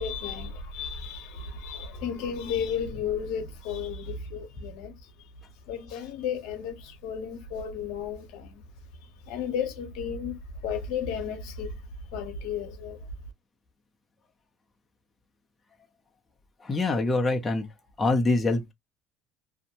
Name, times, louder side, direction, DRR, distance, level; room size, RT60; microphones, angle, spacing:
voice 1, 0.0-4.9 5.7-8.6 9.3-10.4 10.6-11.8 12.1-13.0, left 7 dB, 75° left, 0.8 m, -33 dB
voice 2, 16.6-17.7 18.0-18.7, left 2 dB, 15° left, 0.5 m, -24 dB
2.6 x 2.1 x 2.8 m
cardioid pair, 120°, 0 cm